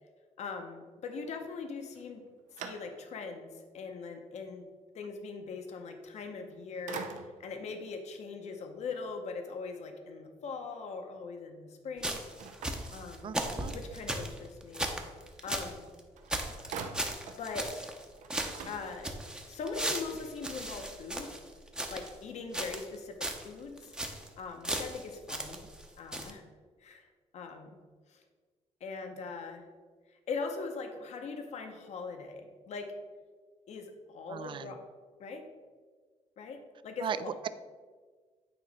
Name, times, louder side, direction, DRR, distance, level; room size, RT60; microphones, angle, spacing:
voice 1, 0.4-2.2 2.6-4.7 4.9-12.2 12.9-13.3 13.7-14.9 15.4-15.8 17.3-17.9 18.7-19.1 19.4-21.3 21.9-23.1 23.4-23.9 24.4-25.6 26.0-26.5 26.8-27.7 28.1-28.2 28.8-29.6 30.1-32.9 33.7-34.8 35.2-35.4 36.4-37.4, left 4 dB, 60° left, 4 dB, 0.9 m, -41 dB
sound 1, 1.9-3.3 3.9-4.0 6.2-6.5 6.9-7.6 12.4-13.7 15.8-15.9 16.2-17.5 17.8-17.9 18.2-19.4, right 6 dB, 80° right, 0.7 m, -45 dB
sound 2, 12.0-15.7 16.0-16.1 16.3-18.1 18.3-22.2 22.5-23.0 23.2-23.5 23.8-24.3 24.6-25.9 26.1-26.3, right 1 dB, 5° right, 0.7 m, -37 dB
voice 2, 13.2-13.8 34.3-34.8 37.0-37.5, right 7 dB, 40° right, 13 dB, 0.4 m, -37 dB
9.0 x 3.1 x 5.4 m, 1.5 s
cardioid pair, 125°, 13 cm